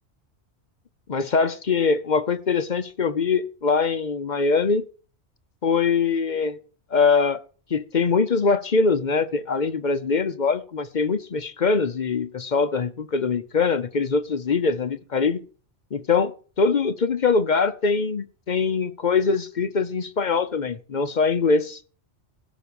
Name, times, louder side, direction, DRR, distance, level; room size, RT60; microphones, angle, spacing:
voice 1, 1.1-4.8 5.6-6.6 6.9-7.4 7.7-15.4 15.9-16.3 16.6-21.8, left 4 dB, 45° left, 0.8 m, -22 dB
15.0 x 6.2 x 7.0 m
omnidirectional pair, 1.2 m